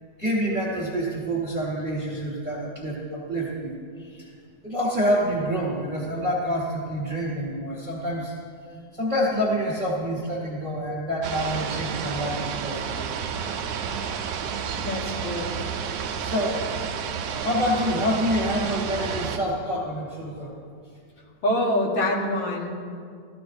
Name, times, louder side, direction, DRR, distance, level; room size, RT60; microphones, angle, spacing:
voice 1, 0.2-4.3 4.6-8.3 8.9-13.1 16.2-16.7 17.4-20.6, equal, 35° right, -4 dB, 1.3 m, -27 dB
sound 1, 11.2-19.4, right 7 dB, 75° right, 1.9 m, -30 dB
voice 2, 14.8-15.5 21.4-22.8, left 1 dB, 60° left, -2 dB, 2.2 m, -25 dB
16.0 x 13.5 x 2.6 m, 2.2 s
omnidirectional pair, 3.3 m